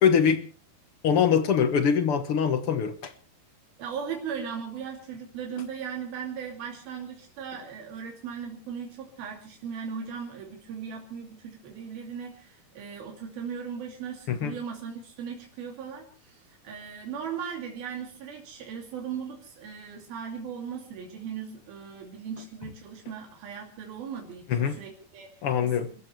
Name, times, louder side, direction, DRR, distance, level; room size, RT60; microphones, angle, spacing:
voice 1, 0.0-0.4 1.0-3.1 14.3-14.5 24.5-24.8 25.4-25.9, left 7 dB, 60° left, 10 dB, 1.5 m, -23 dB
voice 2, 3.8-25.3 25.6-26.0, right 7 dB, 90° right, 1 dB, 4.6 m, -38 dB
29.5 x 14.5 x 3.3 m, 0.39 s
omnidirectional pair, 4.2 m